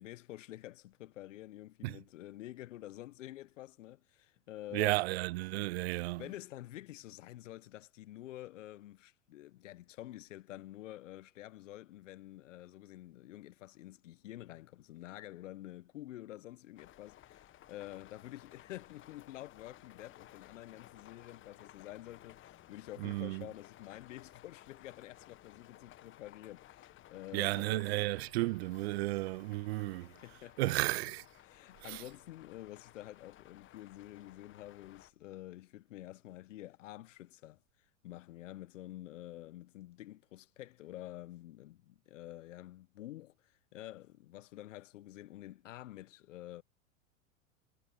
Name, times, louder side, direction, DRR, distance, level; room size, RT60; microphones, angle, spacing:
voice 1, 0.0-5.0 6.2-28.1 30.0-30.8 31.4-37.6 38.0-46.6, left 15 dB, 65° left, 1.3 m, -49 dB
voice 2, 4.7-6.2 23.0-23.5 27.3-30.1 30.6-31.2 31.8-32.0, right 20 dB, 50° right, 0.5 m, -33 dB
sound 1, 16.8-35.1, left 13 dB, 30° left, 1.5 m, -58 dB
hypercardioid pair, 95°, 40 cm